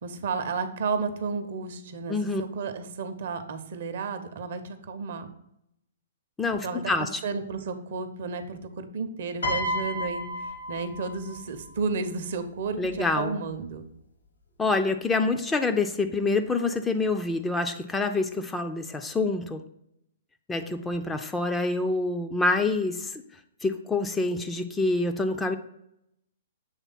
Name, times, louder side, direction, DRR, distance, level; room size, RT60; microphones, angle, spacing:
voice 1, 0.0-5.3 6.6-13.9, right 4 dB, 55° right, 9 dB, 0.6 m, -32 dB
voice 2, 2.1-2.4 6.4-7.2 12.8-13.4 14.6-19.6 20.5-23.2 23.6-25.6, left 3 dB, 10° left, 6 dB, 0.4 m, -26 dB
Piano, 9.4-11.8 12.8-13.1, left 1 dB, 75° left, 1.5 m, -32 dB
7.2 x 3.3 x 4.0 m, 0.78 s
figure-of-eight pair, 115°, 0 cm